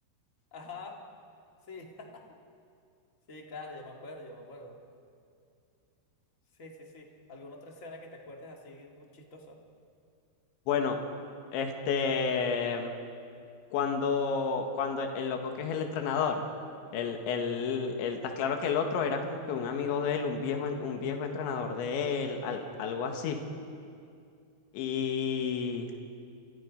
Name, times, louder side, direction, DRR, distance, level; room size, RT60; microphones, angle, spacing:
voice 1, 0.5-1.0 1.7-2.2 3.3-4.8 6.6-9.6 19.7-20.0, left 2 dB, 30° left, 0 dB, 1.4 m, -46 dB
voice 2, 11.5-12.9 13.7-16.4 16.9-23.4 24.7-25.9, left 6 dB, 80° left, 4 dB, 4.0 m, -31 dB
30.0 x 25.0 x 5.3 m, 2.4 s
omnidirectional pair, 5.3 m